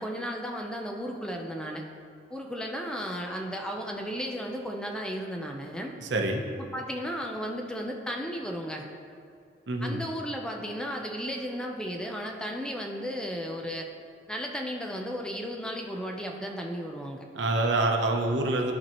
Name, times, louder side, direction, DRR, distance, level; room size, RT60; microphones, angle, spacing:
voice 1, 0.0-1.8 2.3-6.0 6.6-8.9 9.8-13.9 14.3-17.2, equal, 5° left, 1 dB, 0.5 m, -34 dB
voice 2, 6.0-6.5 9.7-10.0 17.3-18.8, right 2 dB, 80° right, 2 dB, 0.8 m, -26 dB
13.0 x 4.6 x 3.0 m, 2.3 s
head